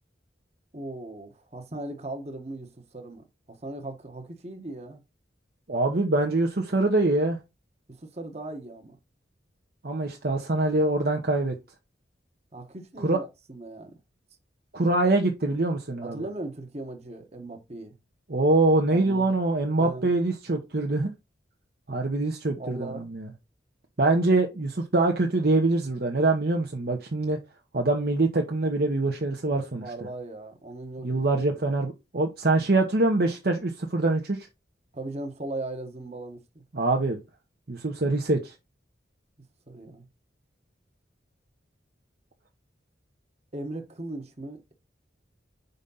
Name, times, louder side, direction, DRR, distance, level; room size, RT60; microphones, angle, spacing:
voice 1, 0.7-5.0 7.9-9.0 12.5-14.0 16.0-17.9 18.9-19.3 19.8-20.1 22.5-23.1 29.8-31.2 34.9-36.6 39.7-40.0 43.5-44.7, right 2 dB, 35° right, 1.2 m, -38 dB
voice 2, 5.7-7.4 9.8-11.5 13.0-13.2 14.7-16.2 18.3-21.1 21.9-23.3 24.0-27.4 27.7-29.9 31.0-34.5 36.7-37.2 37.7-38.5, right 2 dB, 55° right, 0.9 m, -24 dB
5.1 x 4.1 x 5.5 m
head